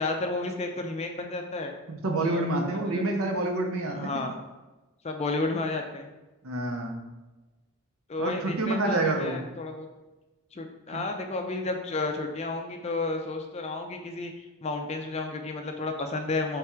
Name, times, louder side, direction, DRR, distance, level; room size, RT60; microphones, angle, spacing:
voice 1, 0.0-1.7 2.2-2.4 2.8-3.0 3.9-4.3 5.0-6.1 8.1-9.9 10.5-16.6, left 3 dB, 30° left, 4 dB, 0.4 m, -32 dB
voice 2, 1.9-4.1 6.4-7.0 8.2-9.4 10.9-11.0, right 2 dB, 75° right, 2 dB, 0.7 m, -28 dB
3.5 x 3.4 x 4.4 m, 1.1 s
head